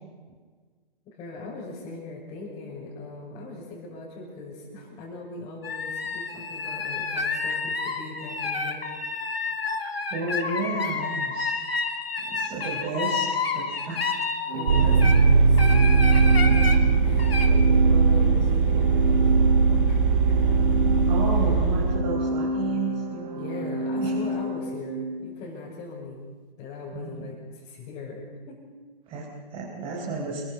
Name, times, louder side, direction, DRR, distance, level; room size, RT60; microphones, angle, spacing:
voice 1, 1.0-8.9 14.5-16.2 16.4-16.6 17.0-20.8 21.3-21.5 23.3-26.2 26.6-28.6, left 3 dB, 20° left, -7 dB, 6.6 m, -40 dB
sound 1, 5.6-15.2 15.6-16.8 17.2-17.5, left 4 dB, 85° left, 3.3 m, -30 dB
voice 2, 10.1-11.5 12.2-13.3 13.5-14.1 20.8-23.7 24.0-24.1 26.9-27.3 29.1-30.4, right 4 dB, 20° right, -4 dB, 4.8 m, -32 dB
Organ, 14.5-25.2, right 1 dB, 45° right, 3.1 m, -29 dB
Vehicle, 14.7-22.0, right 5 dB, 60° right, 3.5 m, -19 dB
29.0 x 22.5 x 5.6 m, 1.5 s
hypercardioid pair, 145°, 29 cm